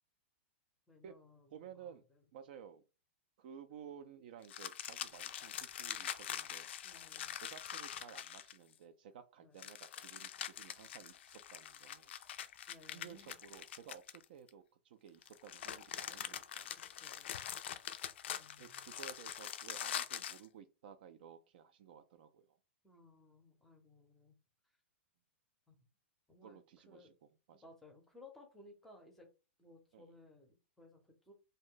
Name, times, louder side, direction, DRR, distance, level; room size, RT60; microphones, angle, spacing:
voice 1, 0.9-2.2 6.8-7.4 9.4-9.7 12.2-12.3 12.7-13.3 16.3-16.4 16.7-17.5 18.4-18.9 22.8-24.4 25.7-25.9 26.3-26.6 26.9-27.1 27.6-29.3 29.6-31.3, left 2 dB, 5° left, 2 dB, 0.6 m, -61 dB
voice 2, 1.5-2.0 2.3-2.8 3.4-6.7 7.3-12.1 12.9-16.7 18.6-22.6 26.4-27.1 27.5-27.6 29.9-30.1, right 8 dB, 50° right, 10 dB, 0.3 m, -55 dB
sound 1, 4.4-8.7 9.6-14.5 15.2-20.4, left 10 dB, 65° left, 0.3 m, -44 dB
2.6 x 2.1 x 3.7 m, 0.31 s
hypercardioid pair, 165°, 7 cm